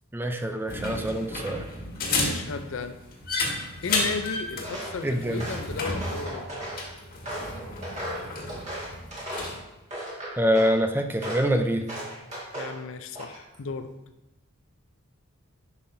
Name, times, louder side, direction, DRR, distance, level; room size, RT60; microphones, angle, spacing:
voice 1, 0.1-1.7 5.0-5.5 10.4-11.9, equal, 10° right, 6 dB, 0.4 m, -25 dB
sound 1, 0.7-9.6, left 2 dB, 45° left, 1.6 m, -32 dB
voice 2, 2.1-3.0 3.8-6.6 12.5-13.9, left 4 dB, 65° left, 9 dB, 0.5 m, -35 dB
Walk footsteps, 4.6-5.0 5.3-6.8 7.2-9.6 9.9-10.8 11.2-11.5 11.9-12.8 13.1-13.6, right 1 dB, 30° right, 1.9 m, -36 dB
10.5 x 5.7 x 2.7 m, 0.97 s
head